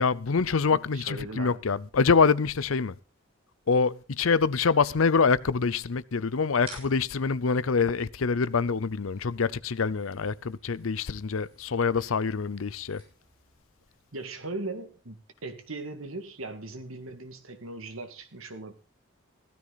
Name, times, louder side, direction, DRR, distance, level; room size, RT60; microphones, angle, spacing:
voice 1, 0.0-2.9 3.7-13.0, left 5 dB, 85° left, 0.6 m, -25 dB
voice 2, 0.9-1.6 14.1-18.7, right 2 dB, 85° right, 2.2 m, -39 dB
sound 1, 6.6-13.6, right 2 dB, 30° right, 7.1 m, -53 dB
15.5 x 13.0 x 4.1 m
head